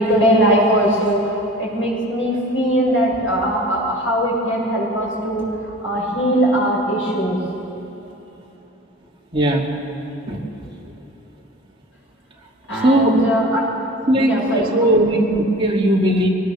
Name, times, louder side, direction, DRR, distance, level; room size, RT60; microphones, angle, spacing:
voice 1, 0.0-5.4 5.8-7.4 12.7-13.6 14.2-15.0, right 1 dB, 85° left, -3 dB, 7.0 m, -20 dB
voice 2, 9.3-9.8 10.3-10.4 12.7-13.2 14.1-16.3, right 1 dB, 25° right, -3 dB, 2.6 m, -18 dB
23.5 x 19.5 x 7.0 m, 3.0 s
head